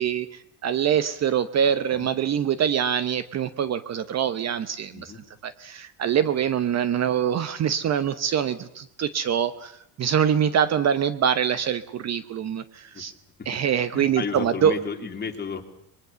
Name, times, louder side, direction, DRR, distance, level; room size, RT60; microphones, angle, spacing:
voice 1, 0.0-5.1 5.4-13.1 13.5-14.8, right 8 dB, 35° right, 14 dB, 0.9 m, -24 dB
voice 2, 13.9-15.6, left 5 dB, 25° left, 4 dB, 2.9 m, -33 dB
25.0 x 22.5 x 6.9 m, 0.72 s
cardioid pair, 130°, 43 cm